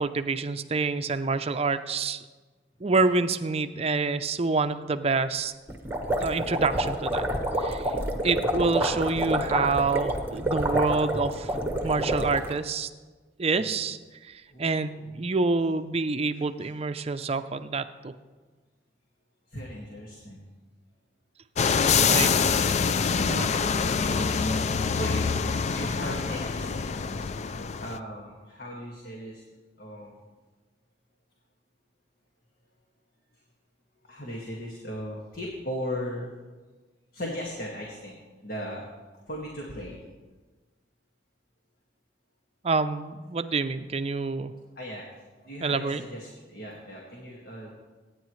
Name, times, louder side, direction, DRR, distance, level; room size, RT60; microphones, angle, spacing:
voice 1, 0.0-2.2 2.8-5.5 6.2-7.3 7.6-7.9 8.2-11.5 11.8-12.9 13.4-18.1 22.0-22.3 23.2-23.5 42.6-44.5 45.6-46.0, right 4 dB, 35° right, 10 dB, 0.5 m, -27 dB
sound 1, 5.7-12.5, right 1 dB, 15° right, 1.3 m, -28 dB
voice 2, 14.5-15.1 16.3-16.7 19.5-20.5 22.1-22.4 23.5-23.7 24.0-24.3 24.9-26.9 27.2-27.3 27.8-29.4 29.8-30.2 34.0-36.3 37.1-38.9 39.3-40.0 44.2-44.3 44.8-45.0 45.4-47.7, equal, 55° left, -3 dB, 2.0 m, -37 dB
sound 2, 21.6-28.0, left 5 dB, 40° left, 0.4 m, -25 dB
24.0 x 9.7 x 3.2 m, 1.3 s
head